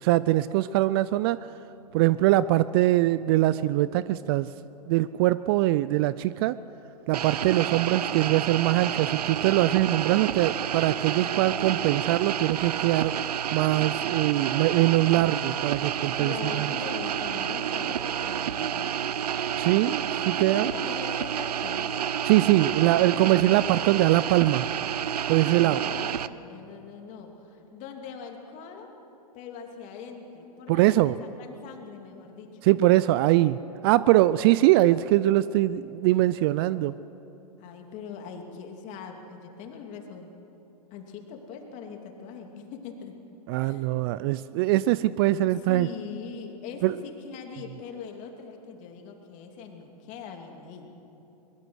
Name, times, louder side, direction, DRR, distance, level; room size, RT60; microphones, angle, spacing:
voice 1, 0.0-1.5 1.9-4.5 4.9-6.6 7.1-13.2 13.5-16.7 19.6-20.7 22.2-24.7 25.3-25.8 30.7-31.2 32.6-36.9 43.5-45.9 46.8-46.9, right 16 dB, 35° right, 17 dB, 0.4 m, -22 dB
sound 1, 7.1-26.3, right 9 dB, 75° right, 0.7 m, -30 dB
voice 2, 16.2-19.0 20.4-22.0 25.5-28.9 29.3-32.6 37.6-40.4 40.9-43.2 43.6-43.9 45.7-51.0, left 6 dB, 35° left, 3 dB, 2.8 m, -41 dB
23.0 x 21.5 x 6.4 m, 3.0 s
hypercardioid pair, 115°, 21 cm